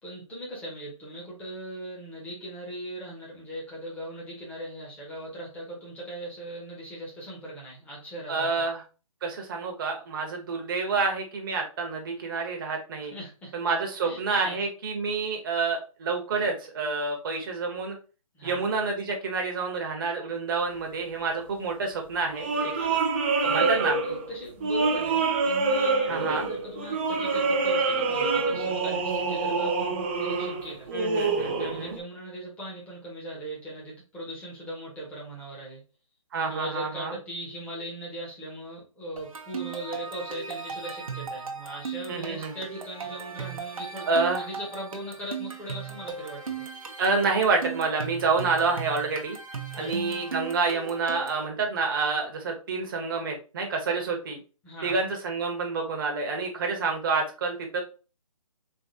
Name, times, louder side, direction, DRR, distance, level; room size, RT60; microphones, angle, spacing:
voice 1, 0.0-8.6 13.1-13.5 14.0-14.6 18.3-18.6 22.8-23.0 23.4-30.9 31.6-35.8 36.5-46.6 49.8-49.9 54.6-55.0, right 1 dB, 10° left, -5 dB, 1.2 m, -39 dB
voice 2, 8.3-8.8 9.2-13.1 13.5-18.0 18.4-22.7 23.4-24.0 26.1-26.5 30.9-32.0 36.3-37.1 42.1-42.5 44.1-44.4 47.0-49.4 49.7-54.4 54.8-57.8, right 4 dB, 35° right, 2 dB, 1.0 m, -28 dB
sound 1, 22.3-32.0, right 4 dB, 20° right, 0.4 m, -26 dB
sound 2, 39.2-51.5, right 6 dB, 70° right, 0.8 m, -37 dB
3.7 x 2.8 x 2.7 m, 0.34 s
figure-of-eight pair, 140°, 18 cm